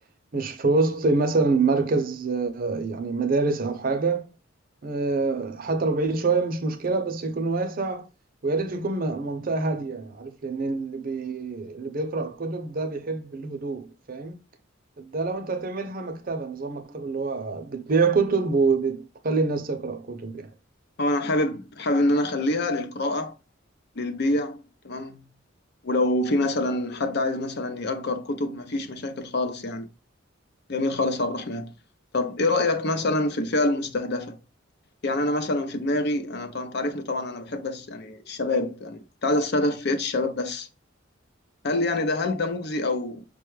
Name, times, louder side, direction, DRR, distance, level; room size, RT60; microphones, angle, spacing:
voice 1, 0.3-4.3 4.8-8.1 8.4-14.4 15.0-20.5, right 3 dB, 45° right, 0.6 m, -26 dB
voice 2, 21.0-23.4 24.0-25.2 25.8-29.9 30.7-31.7 32.1-34.4 35.0-40.7 41.6-43.2, left 2 dB, 60° left, 0.6 m, -26 dB
5.3 x 2.3 x 3.1 m
head